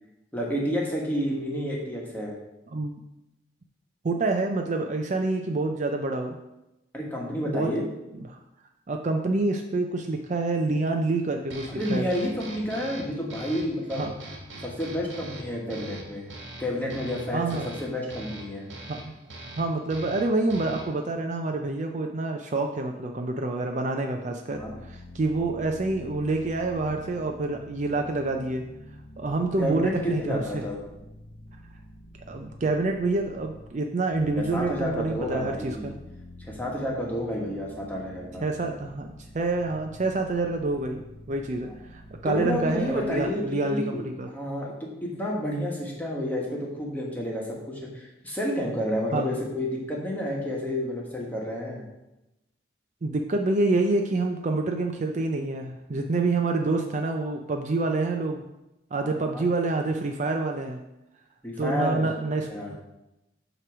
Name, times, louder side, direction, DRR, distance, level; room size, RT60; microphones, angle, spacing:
voice 1, 0.3-2.3 6.9-7.9 11.8-14.1 14.6-16.3 16.6-18.7 24.5-24.7 29.6-30.8 34.3-35.9 36.4-38.4 42.2-51.8 59.0-59.5 61.4-62.1 62.5-62.7, equal, 10° left, -3 dB, 1.4 m, -30 dB
voice 2, 4.0-6.4 7.5-7.7 8.2-8.4 8.9-12.1 14.0-14.1 17.3-17.7 18.9-19.1 19.6-24.6 24.9-28.7 29.2-30.6 32.3-35.9 38.4-41.0 41.3-44.3 49.1-49.3 53.0-58.4 58.9-60.8 61.6-62.8, right 2 dB, 40° right, 4 dB, 0.4 m, -27 dB
sound 1, 11.5-21.1, right 1 dB, 75° right, 1.5 m, -42 dB
sound 2, 24.5-33.7 34.1-43.3, left 1 dB, 30° left, 0.6 m, -47 dB
8.0 x 3.0 x 6.0 m, 0.94 s
head